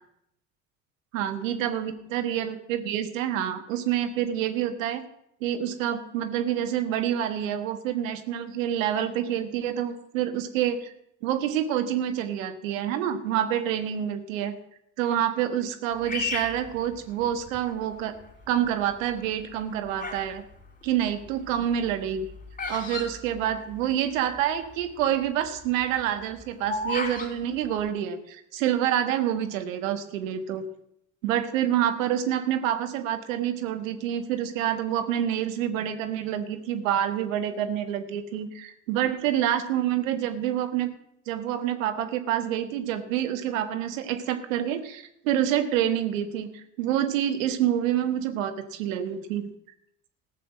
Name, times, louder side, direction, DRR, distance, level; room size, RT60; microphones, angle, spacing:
voice 1, 1.1-5.0 5.4-10.9 11.2-14.5 15.0-18.1 18.5-20.4 20.8-22.3 22.7-30.6 31.2-40.9 41.3-49.5, right 10 dB, 80° right, 9 dB, 1.4 m, -27 dB
Bird vocalization bird call bird song, 16.1-17.6 18.2-18.7 19.4-20.3 20.6-24.1 24.4-24.5 24.6-25.0 25.4-27.3, left 3 dB, 20° left, 3.3 m, -34 dB
14.5 x 6.8 x 7.6 m, 0.76 s
hypercardioid pair, 65°, 39 cm